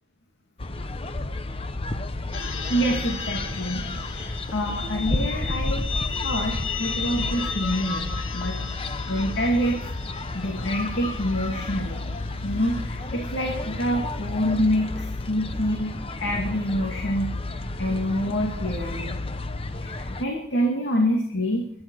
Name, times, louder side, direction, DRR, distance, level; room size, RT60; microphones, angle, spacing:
sound 1, 0.6-20.2, left 2 dB, 30° left, 0.8 m, -31 dB
sound 2, 2.3-14.9, left 5 dB, 75° left, 2.0 m, -36 dB
voice 1, 2.7-5.9 6.2-8.1 8.3-8.6 9.1-9.8 10.3-12.0 12.4-17.3 17.8-19.2 19.8-21.6, equal, 60° left, 0 dB, 2.5 m, -26 dB
23.0 x 10.5 x 4.8 m, 0.68 s
head